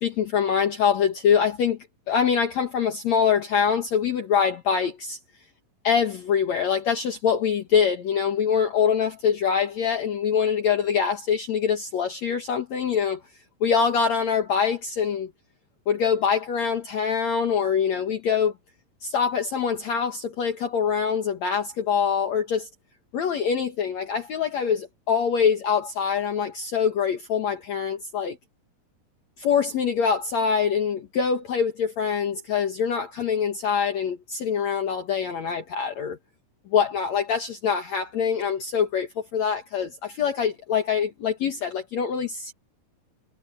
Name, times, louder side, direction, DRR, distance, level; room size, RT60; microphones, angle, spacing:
voice 1, 0.0-1.8 2.1-5.2 5.8-13.2 13.6-15.3 15.9-18.5 19.0-22.7 23.1-28.4 29.4-36.2 36.7-42.5, left 7 dB, 60° left, 2.5 m, -24 dB
omnidirectional pair, 4.0 m